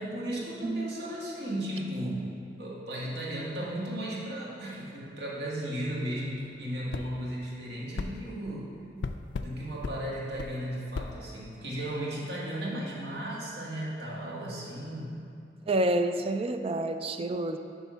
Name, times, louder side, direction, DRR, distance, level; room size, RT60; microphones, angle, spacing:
voice 1, 0.0-8.8 9.4-15.3, right 1 dB, 80° right, -6 dB, 1.8 m, -35 dB
sound 1, 6.9-7.1 8.0-8.1 9.0-9.5 9.8-10.0 10.4-10.5 10.9-11.1, left 4 dB, 75° left, 0.3 m, -34 dB
voice 2, 15.7-17.6, right 1 dB, 35° right, 8 dB, 0.3 m, -28 dB
10.0 x 3.6 x 5.5 m, 2.5 s
head